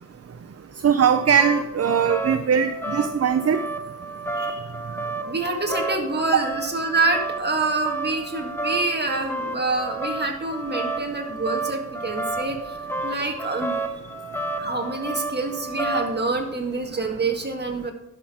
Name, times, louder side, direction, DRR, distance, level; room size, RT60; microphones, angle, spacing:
voice 1, 0.8-3.6, right 7 dB, 50° right, 9 dB, 0.6 m, -20 dB
sound 1, 0.9-16.3, right 2 dB, 10° left, 1.0 m, -31 dB
voice 2, 4.3-12.8 13.0-13.8 14.6-17.9, right 3 dB, 35° right, 2 dB, 1.7 m, -27 dB
11.0 x 6.0 x 4.8 m, 0.84 s
wide cardioid pair, 100°, 31 cm